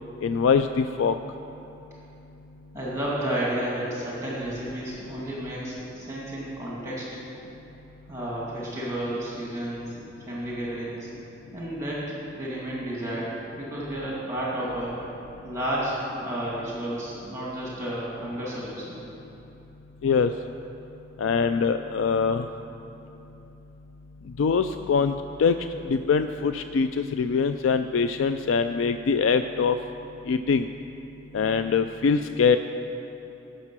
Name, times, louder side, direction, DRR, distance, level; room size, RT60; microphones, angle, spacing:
voice 1, 0.2-1.1 20.0-20.3 21.2-22.5 24.4-25.6 25.9-29.8 30.3-30.7 31.3-32.6, left 5 dB, 90° left, 9 dB, 0.4 m, -23 dB
voice 2, 2.7-7.2 8.1-11.1 11.5-14.9 15.4-19.0, right 1 dB, 15° right, -6 dB, 2.0 m, -32 dB
17.0 x 6.6 x 6.0 m, 3.0 s
head